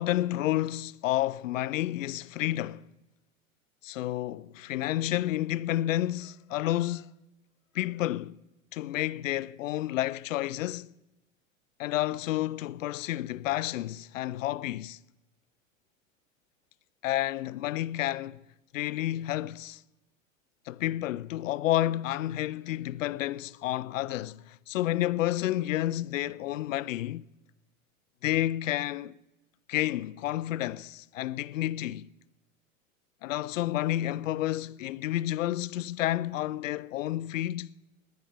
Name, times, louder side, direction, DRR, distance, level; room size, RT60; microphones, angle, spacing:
voice 1, 0.0-2.8 3.8-7.1 7.7-8.4 8.7-10.9 11.8-15.0 17.0-18.4 18.7-19.8 20.7-27.2 28.2-29.1 29.7-32.1 33.2-37.7, left 14 dB, 65° left, 0.5 m, -30 dB
18.5 x 10.5 x 5.1 m
figure-of-eight pair, 90°, 41 cm